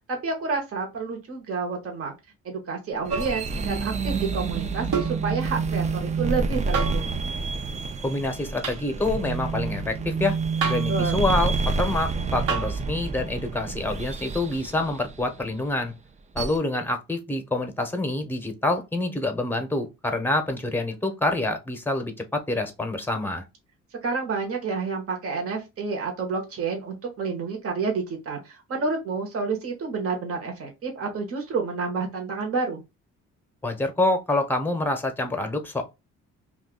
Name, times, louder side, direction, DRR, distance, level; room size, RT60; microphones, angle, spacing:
voice 1, 0.1-2.1 2.4-7.2 10.9-11.2 24.0-32.8, right 4 dB, 50° right, 1.1 m, -29 dB
sound 1, 2.9-15.6 16.4-16.6, right 4 dB, 25° right, 0.4 m, -28 dB
sound 2, 3.1-3.4 4.9-5.2 6.7-7.1 8.6-8.8 10.6-11.0 12.5-12.8 14.5-14.6, right 5 dB, 80° right, 1.2 m, -28 dB
voice 2, 8.0-10.4 10.6-15.9 16.3-23.4 33.6-35.8, left 2 dB, 5° left, 0.8 m, -27 dB
2.5 x 2.4 x 3.7 m
cardioid pair, 90°, 30 cm